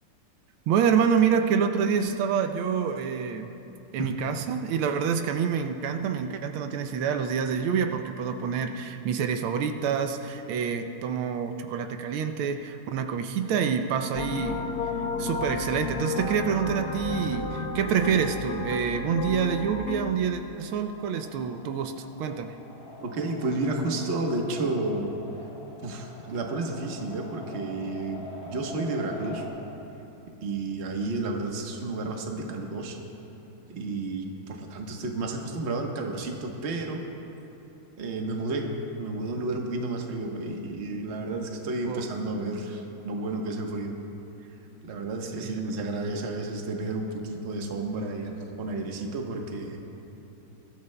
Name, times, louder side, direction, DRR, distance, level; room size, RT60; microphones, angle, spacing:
voice 1, 0.7-3.5 3.9-14.7 15.2-22.6 41.8-42.1 45.3-45.6, right 7 dB, 80° right, 7 dB, 1.4 m, -27 dB
sound 1, 14.1-20.1, left 4 dB, 65° left, 1.0 m, -32 dB
sound 2, 19.7-29.5, left 1 dB, 90° left, 4.4 m, -45 dB
voice 2, 23.0-25.2 25.8-29.4 30.4-33.0 33.7-37.0 38.0-38.7 39.0-43.9 44.8-49.8, right 2 dB, 40° right, 1 dB, 1.1 m, -31 dB
22.0 x 13.5 x 2.2 m, 2.9 s
omnidirectional pair, 2.4 m